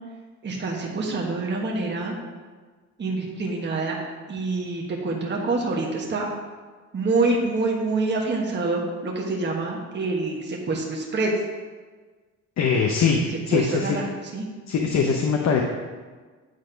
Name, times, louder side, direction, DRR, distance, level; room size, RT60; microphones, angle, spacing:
voice 1, 0.4-2.1 3.0-4.0 4.3-6.3 6.9-11.3 13.5-14.4, right 3 dB, 35° right, -1 dB, 1.4 m, -26 dB
voice 2, 12.6-13.2 13.5-14.0 14.7-15.6, left 6 dB, 60° left, 2 dB, 0.9 m, -21 dB
9.6 x 4.2 x 5.1 m, 1.4 s
cardioid pair, 90°, 30 cm